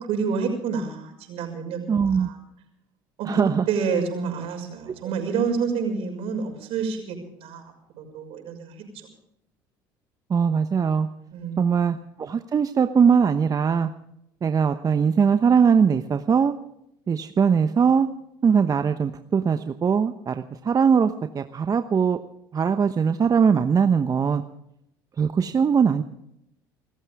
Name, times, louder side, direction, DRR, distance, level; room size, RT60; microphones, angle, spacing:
voice 1, 0.0-1.8 2.2-2.4 3.2-7.6 8.0-9.1 11.3-11.9, right 5 dB, 65° right, 3 dB, 6.2 m, -28 dB
voice 2, 1.9-2.3 3.3-3.7 10.3-11.1 11.6-13.9 14.4-16.5 17.1-18.1 18.4-22.2 22.5-24.4 25.2-26.0, right 6 dB, 35° right, 8 dB, 1.0 m, -21 dB
27.5 x 14.5 x 3.6 m, 0.77 s
hypercardioid pair, 70°, 11 cm